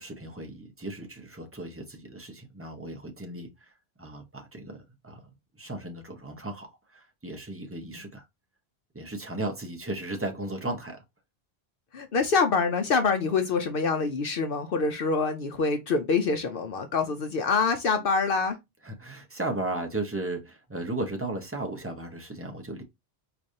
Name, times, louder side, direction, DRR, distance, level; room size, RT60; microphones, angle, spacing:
voice 1, 0.0-3.5 4.0-5.2 5.6-6.7 7.2-8.2 8.9-11.0 18.8-22.8, right 2 dB, 15° right, 0.6 m, -35 dB
voice 2, 11.9-18.6, left 4 dB, 60° left, 0.7 m, -25 dB
4.7 x 2.5 x 2.7 m
omnidirectional pair, 1.1 m